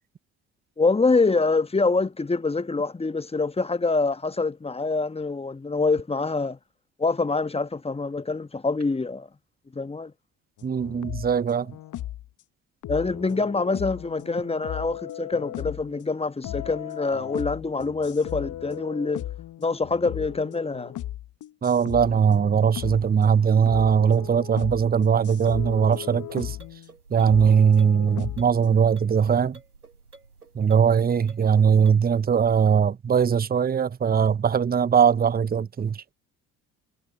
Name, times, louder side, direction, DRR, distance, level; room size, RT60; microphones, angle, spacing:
voice 1, 0.8-6.6 7.0-9.3 9.7-10.1 12.9-19.2 19.6-20.9, left 3 dB, 15° left, 1.3 m, -25 dB
sound 1, 10.6-12.3 12.8-16.1 16.4-26.9 27.3-28.9, left 13 dB, 45° left, 1.1 m, -37 dB
voice 2, 10.6-11.7 21.6-26.6 27.1-29.6 30.5-36.0, right 7 dB, 20° right, 0.9 m, -20 dB
sound 2, 25.3-32.3, right 4 dB, 85° right, 2.2 m, -52 dB
figure-of-eight pair, 50°, 44 cm